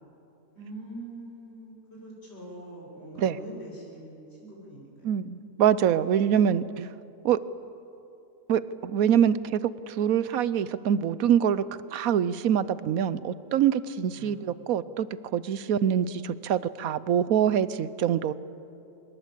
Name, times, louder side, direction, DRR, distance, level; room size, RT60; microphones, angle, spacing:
voice 1, 0.5-5.1 14.1-14.5, right 1 dB, 45° left, -4 dB, 7.9 m, -43 dB
voice 2, 5.0-6.9 7.2-7.4 8.5-11.6 11.9-15.1 15.3-18.3, right 9 dB, 80° right, 16 dB, 1.2 m, -25 dB
25.0 x 21.5 x 8.3 m, 2.7 s
omnidirectional pair, 1.5 m